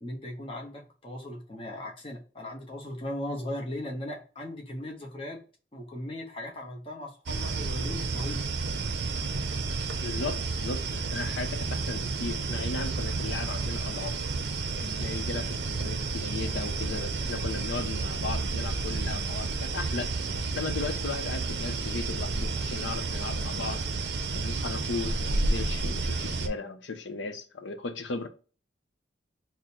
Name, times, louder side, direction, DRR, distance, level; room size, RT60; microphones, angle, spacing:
voice 1, 0.0-5.4 5.7-8.5, left 1 dB, 30° left, 0.8 m, -38 dB
sound 1, 7.3-26.5, right 3 dB, 70° right, 0.5 m, -31 dB
voice 2, 10.0-14.1 14.7-20.1 20.5-23.8 24.3-28.3, left 4 dB, 90° left, 0.6 m, -36 dB
3.7 x 2.1 x 4.2 m
head